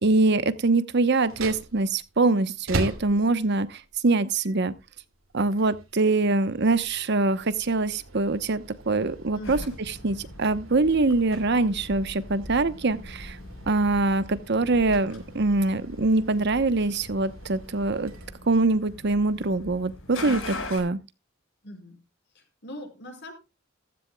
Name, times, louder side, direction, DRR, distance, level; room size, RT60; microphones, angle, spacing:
voice 1, 0.0-4.7 5.3-13.4 13.7-18.1 18.5-21.0, right 3 dB, 55° right, 0.9 m, -24 dB
sound 1, 1.2-19.0, right 2 dB, 80° right, 2.7 m, -41 dB
sound 2, 9.4-20.8, left 2 dB, 75° left, 4.6 m, -41 dB
voice 2, 21.6-22.0 22.3-23.3, equal, 55° left, 5.1 m, -41 dB
15.0 x 13.5 x 2.3 m
head